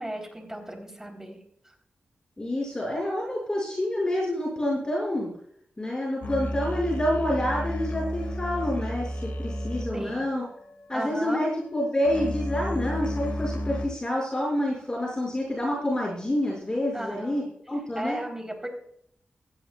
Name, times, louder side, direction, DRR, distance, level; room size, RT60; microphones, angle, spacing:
voice 1, 0.0-1.4 9.9-10.3 10.9-11.4 16.9-17.5 18.0-18.7, right 1 dB, 15° right, 2 dB, 4.0 m, -35 dB
voice 2, 2.4-5.3 5.8-9.1 9.4-10.5 10.9-18.2, left 1 dB, 20° left, -4 dB, 6.7 m, -28 dB
sound 1, 6.2-13.9, equal, 65° left, 2.0 m, -33 dB
17.5 x 15.5 x 2.5 m, 0.67 s
wide cardioid pair, 95°, 4 cm